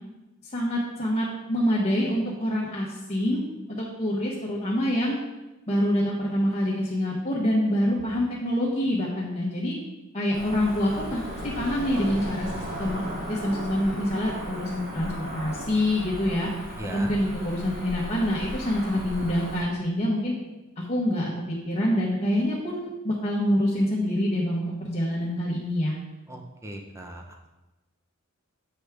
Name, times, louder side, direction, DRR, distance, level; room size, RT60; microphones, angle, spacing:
voice 1, 0.4-3.4 3.7-5.2 5.7-9.7 10.1-13.0 13.3-16.5 16.9-20.3 20.8-26.0, left 1 dB, 30° left, -6 dB, 1.0 m, -26 dB
Cricket / Motor vehicle (road), 10.3-19.6, equal, 40° right, 2.0 m, -36 dB
voice 2, 16.8-17.1 26.3-27.2, right 1 dB, 15° right, 2 dB, 0.6 m, -37 dB
7.9 x 4.7 x 3.4 m, 1.1 s
head